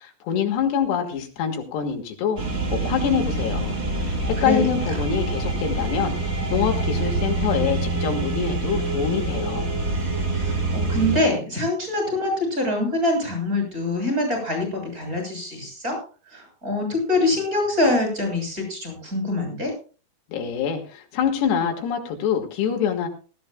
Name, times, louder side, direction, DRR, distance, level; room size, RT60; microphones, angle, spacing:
voice 1, 0.0-2.4 2.7-6.2 6.5-9.7 20.3-23.1, left 7 dB, 85° left, 3 dB, 3.9 m, -25 dB
sound 1, 2.4-11.2, right 2 dB, 35° right, 1.0 m, -26 dB
voice 2, 10.3-16.0 16.3-19.7, left 2 dB, 20° right, 2 dB, 7.4 m, -24 dB
19.5 x 14.0 x 2.3 m, 0.36 s
omnidirectional pair, 4.7 m